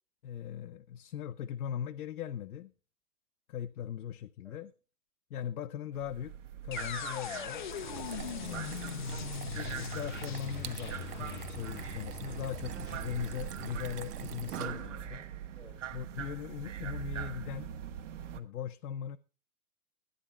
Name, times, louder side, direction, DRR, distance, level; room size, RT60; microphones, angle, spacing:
voice 1, 0.2-2.7 3.5-4.7 5.3-6.3 6.6-7.7 9.5-15.3 15.9-17.7 18.3-19.2, left 9 dB, 70° left, 0.7 m, -39 dB
sound 1, 5.9-18.4, right 9 dB, 50° right, 1.4 m, -43 dB
sound 2, 6.7-14.7, left 9 dB, 35° left, 0.5 m, -41 dB
sound 3, 7.6-15.2, right 10 dB, 75° right, 1.1 m, -43 dB
voice 2, 8.4-9.1 15.5-15.9, equal, ahead, 1.2 m, -57 dB
12.5 x 9.5 x 4.3 m
hypercardioid pair, 160°, 46 cm